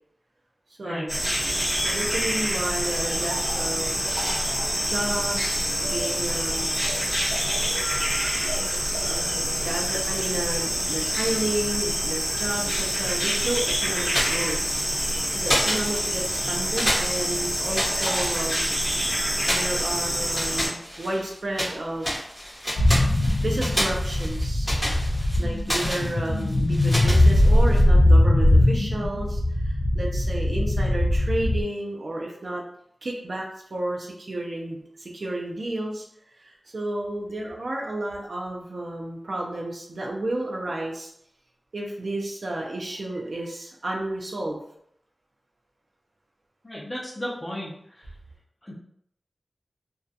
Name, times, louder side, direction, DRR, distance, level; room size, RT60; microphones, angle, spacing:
voice 1, 0.8-1.2 1.8-4.0 4.9-6.8 9.0-14.7 15.3-18.7 19.5-22.3 23.4-24.7 25.4-32.6 33.0-36.0 36.4-41.1 41.7-44.6, right 1 dB, 80° right, -2 dB, 0.4 m, -32 dB
sound 1, 1.1-20.7, equal, 20° right, 1.2 m, -26 dB
sound 2, 14.0-15.1 15.4-16.4 16.7-18.8 19.4-21.8 22.0-27.8, equal, ahead, 1.0 m, -30 dB
sound 3, 22.8-31.6, left 1 dB, 90° left, 0.4 m, -20 dB
voice 2, 46.6-47.7 48.0-48.1 48.6-48.7, equal, 30° left, -5 dB, 0.5 m, -34 dB
2.3 x 2.2 x 2.6 m, 0.71 s
wide cardioid pair, 75°, 0 cm